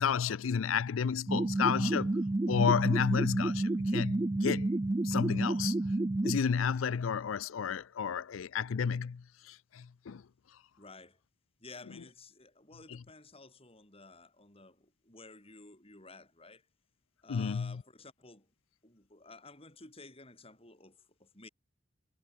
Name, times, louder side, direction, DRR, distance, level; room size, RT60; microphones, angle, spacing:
voice 1, 0.0-2.1 2.5-4.7 5.0-5.7 6.2-10.2 17.3-17.8, left 6 dB, 85° left, 0.4 m, -31 dB
sound 1, 1.3-6.4, right 2 dB, 20° right, 0.4 m, -30 dB
voice 2, 10.8-11.2 11.6-16.7 17.2-18.5 18.8-21.5, left 3 dB, 30° left, 7.6 m, -53 dB
head